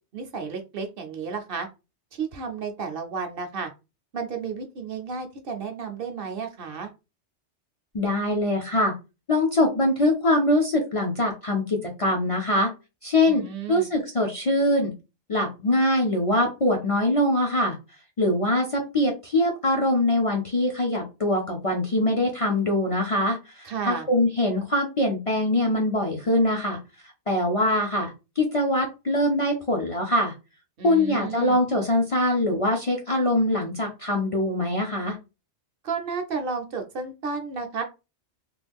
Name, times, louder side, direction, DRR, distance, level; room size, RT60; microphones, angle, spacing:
voice 1, 0.1-1.7 2.1-3.7 4.1-6.9 13.3-13.9 23.6-24.1 30.8-31.6 35.8-37.8, right 5 dB, 60° right, 5 dB, 0.7 m, -32 dB
voice 2, 7.9-8.9 9.3-12.7 13.0-14.9 15.3-17.8 18.2-26.8 27.3-30.3 30.8-35.2, left 1 dB, 40° left, 0 dB, 0.5 m, -23 dB
3.0 x 2.2 x 3.4 m, 0.28 s
omnidirectional pair, 1.2 m